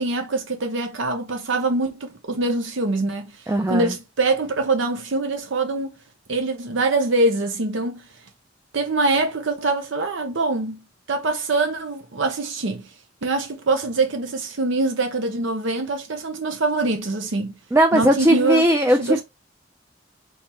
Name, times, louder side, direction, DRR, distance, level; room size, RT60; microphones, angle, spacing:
voice 1, 0.0-3.3 3.7-5.9 6.3-8.0 8.7-10.8 11.1-12.9 13.2-17.5 17.9-18.6 19.0-19.2, right 3 dB, 80° right, 0.8 m, -24 dB
voice 2, 3.5-3.9 17.7-19.2, equal, 15° right, 0.4 m, -18 dB
4.2 x 3.9 x 2.9 m
head